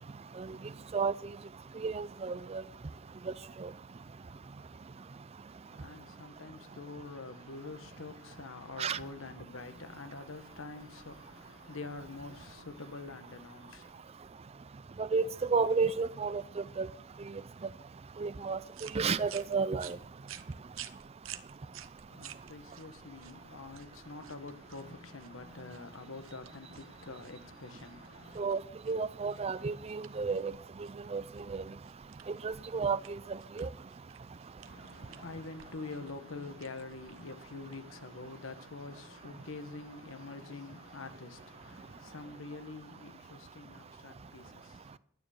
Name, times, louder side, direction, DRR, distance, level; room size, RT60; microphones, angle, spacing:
voice 1, 1.8-2.6 3.6-3.7 8.8-9.0 15.0-16.9 18.2-18.6 18.9-20.0 28.4-28.6 28.9-30.5 31.1-31.2 31.5-31.6 32.4-33.2 33.6-33.7, right 5 dB, 30° right, 0.4 m, -31 dB
voice 2, 5.6-14.1 22.1-28.4 34.6-45.0, left 3 dB, 80° left, 1.2 m, -46 dB
sound 1, 18.7-38.3, right 11 dB, 80° right, 0.8 m, -53 dB
12.0 x 9.3 x 6.5 m
head